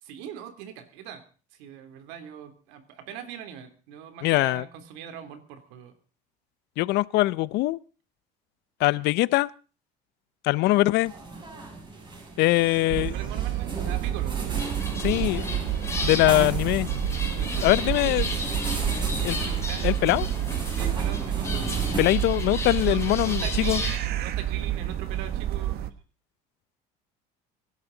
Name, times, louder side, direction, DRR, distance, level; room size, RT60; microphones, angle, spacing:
voice 1, 0.0-1.2 1.5-5.9 13.1-14.4 17.2-18.1 18.8-20.2 20.7-21.8 22.8-25.9, right 9 dB, 85° right, 3.1 m, -41 dB
voice 2, 4.2-4.6 6.8-7.8 8.8-9.5 10.4-11.1 12.4-13.1 15.0-15.4 16.0-16.9 17.6-18.2 19.2-19.4 19.8-20.3 22.0-23.4 23.7-23.8, left 18 dB, 70° left, 0.6 m, -22 dB
sound 1, 11.0-22.0, right 2 dB, 25° right, 7.2 m, -36 dB
sound 2, 12.9-25.9, right 12 dB, 60° right, 1.3 m, -29 dB
sound 3, 14.6-24.0, left 3 dB, 15° left, 3.6 m, -35 dB
24.0 x 11.5 x 3.9 m
cardioid pair, 120°, 18 cm